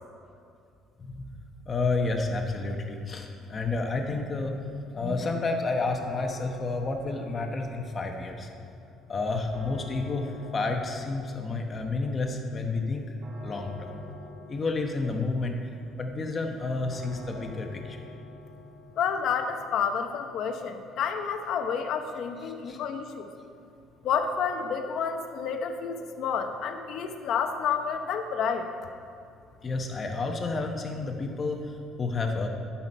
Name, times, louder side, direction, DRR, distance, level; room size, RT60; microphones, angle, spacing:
voice 1, 1.0-1.3 1.7-4.5 4.9-8.5 9.1-13.0 13.4-14.0 14.5-15.6 16.0-18.0 22.6-22.8 29.6-32.5, left 3 dB, 25° left, 3 dB, 0.9 m, -30 dB
sound 1, 5.8-24.7, left 1 dB, 60° right, 3.0 m, -49 dB
voice 2, 19.0-23.3 24.0-28.7, left 6 dB, 60° left, 6 dB, 0.8 m, -29 dB
14.0 x 5.8 x 5.4 m, 2.5 s
cardioid pair, 150°, 0 cm